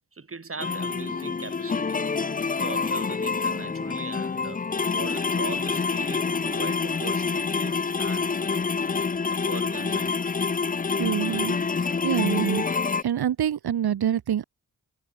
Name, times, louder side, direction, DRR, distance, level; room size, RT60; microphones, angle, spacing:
voice 1, 0.1-2.0 2.6-4.6 4.9-8.4 9.3-10.3, right 4 dB, 35° right, 2.7 m, -40 dB
sound 1, 0.6-13.0, left 5 dB, 20° left, 0.6 m, -27 dB
voice 2, 11.0-11.6 12.0-12.6 13.0-14.4, right 10 dB, 75° right, 1.4 m, -25 dB
cardioid pair, 55°, 39 cm